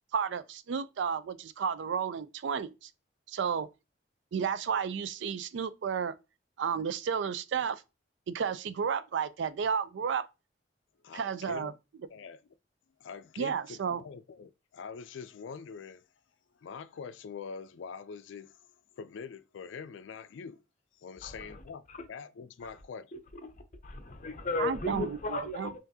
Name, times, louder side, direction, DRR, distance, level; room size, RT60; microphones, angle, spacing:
voice 1, 0.1-2.9 3.3-3.7 4.3-6.1 6.6-7.8 8.3-10.3 11.1-11.7 13.4-14.0 24.6-25.2 25.6-25.7, right 6 dB, 70° right, 0.4 m, -32 dB
voice 2, 11.0-11.7 12.1-12.4 13.0-16.0 16.6-18.5 19.0-20.6 21.0-23.1, left 5 dB, 80° left, 0.4 m, -44 dB
voice 3, 21.2-21.6 21.9-22.0 22.6-22.7 23.1-23.2 23.8-25.8, left 2 dB, 45° left, 0.7 m, -35 dB
5.7 x 2.5 x 2.7 m
head